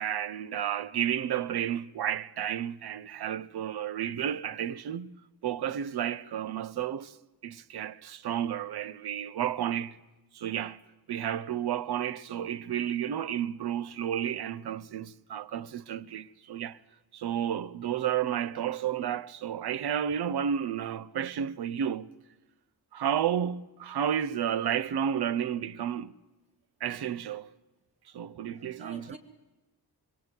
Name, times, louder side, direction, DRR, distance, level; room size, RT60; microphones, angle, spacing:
voice 1, 0.0-5.1 5.4-7.1 7.4-10.0 10.3-16.8 17.1-22.1 22.9-26.1 26.8-27.5 28.1-29.2, right 9 dB, 75° right, 1.0 m, -32 dB
voice 2, 28.1-29.2, right 4 dB, 15° right, 4.3 m, -49 dB
25.0 x 23.5 x 9.7 m
wide cardioid pair, 155°, 39 cm